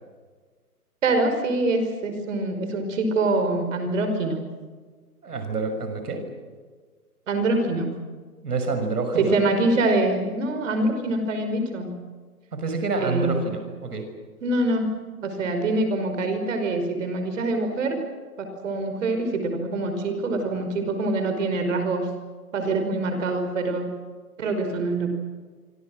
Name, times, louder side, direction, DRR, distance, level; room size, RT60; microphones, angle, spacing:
voice 1, 1.0-4.4 7.3-7.9 9.2-11.9 13.0-13.5 14.4-14.9 15.2-18.0 18.4-22.1 22.5-23.9 24.4-25.1, right 2 dB, 55° right, 6 dB, 5.4 m, -24 dB
voice 2, 5.2-6.2 8.4-9.4 12.5-14.1, right 3 dB, 75° right, 7 dB, 6.2 m, -27 dB
26.5 x 26.0 x 6.5 m, 1.5 s
hypercardioid pair, 150°, 46 cm